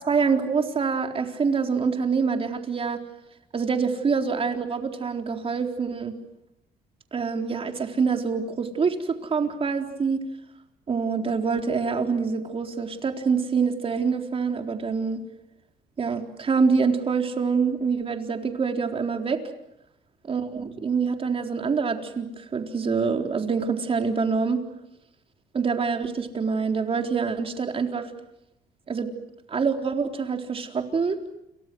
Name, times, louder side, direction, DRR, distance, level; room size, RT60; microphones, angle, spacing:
voice 1, 0.0-3.0 3.5-6.1 7.1-10.2 10.9-15.2 16.0-19.4 20.3-24.6 25.5-28.1 28.9-29.1 29.5-31.2, right 5 dB, 35° right, 4 dB, 4.0 m, -25 dB
29.5 x 29.0 x 6.3 m, 0.84 s
cardioid pair, 110°, 17 cm